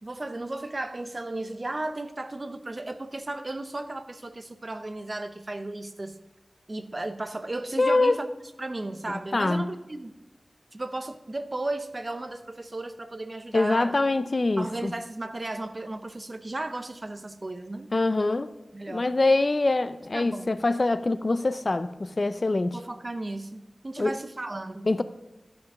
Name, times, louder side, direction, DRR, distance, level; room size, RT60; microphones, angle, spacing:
voice 1, 0.0-6.2 6.7-8.3 8.6-10.1 10.7-14.0 14.6-17.9 18.7-19.1 20.1-20.5 22.7-24.9, right 2 dB, 40° right, 11 dB, 0.7 m, -35 dB
voice 2, 7.8-8.1 9.3-9.6 13.5-14.9 17.9-18.5 18.9-22.8 24.0-24.1 24.9-25.0, left 2 dB, 45° left, 13 dB, 0.4 m, -24 dB
12.5 x 6.1 x 6.2 m, 1.0 s
wide cardioid pair, 85°, 0 cm